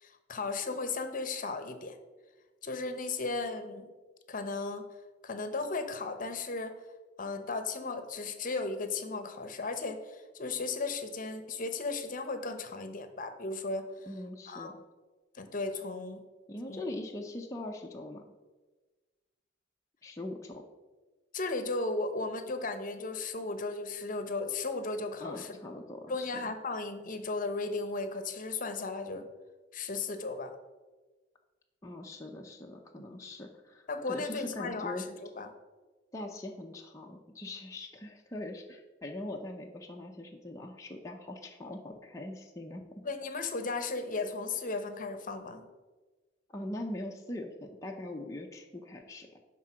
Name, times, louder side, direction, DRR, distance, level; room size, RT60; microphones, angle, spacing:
voice 1, 0.0-2.0 2.6-3.9 4.3-4.8 5.2-6.8 7.2-13.9 14.5-14.7 15.3-16.2 16.7-16.8 21.3-25.6 26.1-29.3 29.7-30.5 33.0-33.2 33.9-35.1 35.4-35.5 43.0-45.7, left 3 dB, 45° left, 8 dB, 0.8 m, -35 dB
voice 2, 14.1-14.7 16.5-18.2 20.0-20.7 25.2-26.5 31.8-35.0 36.1-42.8 46.5-49.4, left 1 dB, 15° left, 0 dB, 0.6 m, -42 dB
10.0 x 3.8 x 6.1 m, 1.3 s
head